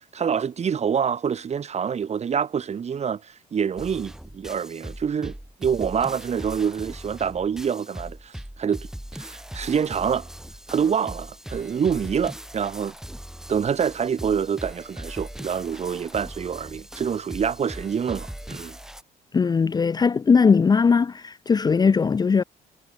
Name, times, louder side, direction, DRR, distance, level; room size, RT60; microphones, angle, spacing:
voice 1, 0.1-8.9 9.1-10.3 10.7-12.9 13.5-18.8, right 7 dB, 40° right, 5.9 m, -26 dB
sound 1, 3.8-19.0, equal, 5° right, 3.1 m, -39 dB
voice 2, 19.3-22.4, left 5 dB, 25° left, 0.7 m, -19 dB
cardioid pair, 110°, 17 cm